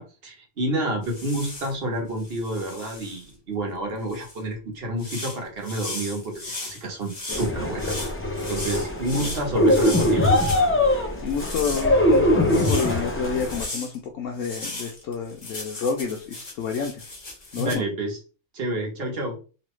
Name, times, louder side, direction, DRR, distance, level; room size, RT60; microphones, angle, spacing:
voice 1, 0.0-8.0 8.5-10.3 17.6-18.2 18.5-19.4, right 1 dB, 55° right, 1 dB, 1.1 m, -29 dB
sound 1, 1.0-1.7 2.2-3.3 4.1-4.4 5.0-10.6 11.2-13.0 13.3-13.9 14.4-17.7, left 2 dB, 35° left, 1.2 m, -36 dB
sound 2, 7.3-13.6, left 1 dB, 20° left, 0.4 m, -22 dB
voice 2, 11.2-17.1 17.5-17.8, left 6 dB, 85° left, 0 dB, 1.0 m, -29 dB
3.1 x 2.6 x 3.0 m, 0.35 s
omnidirectional pair, 1.3 m